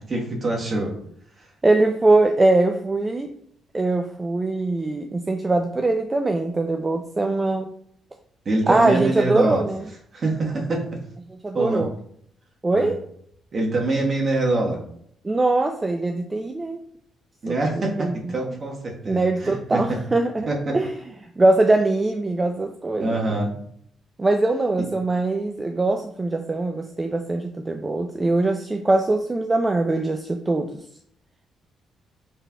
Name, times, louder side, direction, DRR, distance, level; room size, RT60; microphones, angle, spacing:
voice 1, 0.1-0.9 1.4-1.5 8.4-9.6 10.1-11.0 11.5-11.9 12.7-12.9 13.5-14.8 17.4-20.0 20.5-20.8 23.0-23.5, right 2 dB, 45° right, 0 dB, 1.2 m, -25 dB
voice 2, 1.6-3.3 3.7-7.7 8.7-9.8 11.4-11.9 12.6-13.0 15.2-16.8 17.5-17.6 18.0-18.1 18.5-18.6 19.1-20.5 20.7-20.9 21.2-23.4 24.2-30.8, right 2 dB, 20° right, 5 dB, 0.4 m, -22 dB
5.8 x 3.3 x 2.2 m, 0.67 s
cardioid pair, 90°, 0 cm